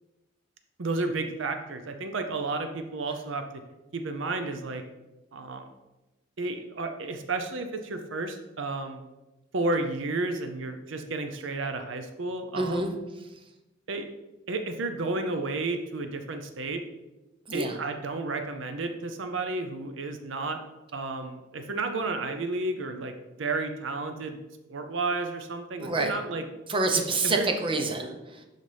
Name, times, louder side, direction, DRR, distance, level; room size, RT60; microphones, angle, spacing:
voice 1, 0.8-3.4 3.9-4.8 5.3-5.7 6.4-9.0 9.5-12.9 13.9-14.1 14.5-16.8 17.5-20.6 20.9-23.1 23.4-24.4 24.7-26.4 27.2-27.5, right 3 dB, 65° right, 6 dB, 0.6 m, -32 dB
voice 2, 12.5-12.9 17.5-17.8 25.8-26.2 26.7-28.4, right 3 dB, 25° right, 4 dB, 0.7 m, -27 dB
11.5 x 4.1 x 3.4 m, 1.0 s
head